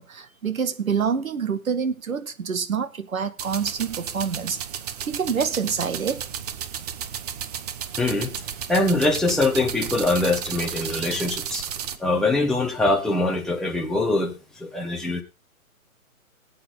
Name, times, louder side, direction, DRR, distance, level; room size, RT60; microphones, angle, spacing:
voice 1, 0.0-4.6 5.1-6.2, right 6 dB, 75° right, 2.0 m, -26 dB
sound 1, 3.4-12.0, right 9 dB, 30° right, 1.0 m, -33 dB
voice 2, 8.0-8.3 8.7-11.7 12.0-15.2, left 2 dB, ahead, 1.3 m, -23 dB
19.5 x 8.8 x 3.8 m
hypercardioid pair, 145°, 42 cm